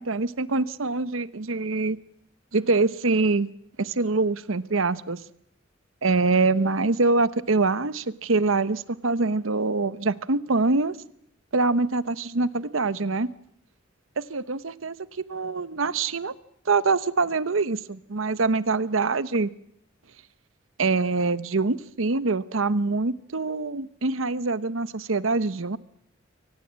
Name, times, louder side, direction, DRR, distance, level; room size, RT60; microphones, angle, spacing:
voice 1, 0.0-2.0 2.5-3.5 3.8-5.2 6.0-11.0 11.5-13.3 14.2-16.3 16.7-19.5 20.8-25.8, right 3 dB, 85° right, 1.0 m, -24 dB
23.5 x 18.5 x 7.5 m
head